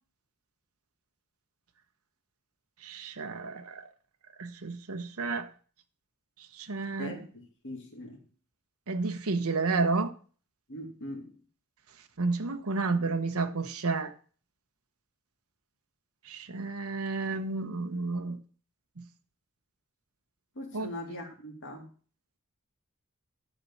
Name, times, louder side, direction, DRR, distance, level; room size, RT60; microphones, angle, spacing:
voice 1, 2.8-3.9 4.4-5.5 6.6-7.1 8.9-10.1 12.2-14.1 16.3-18.4 19.0-19.1 20.7-20.9, right 3 dB, 85° right, 1.0 m, -31 dB
voice 2, 7.0-8.2 10.7-11.3 20.6-21.9, left 1 dB, 60° left, 2.5 m, -41 dB
10.5 x 4.2 x 7.2 m
head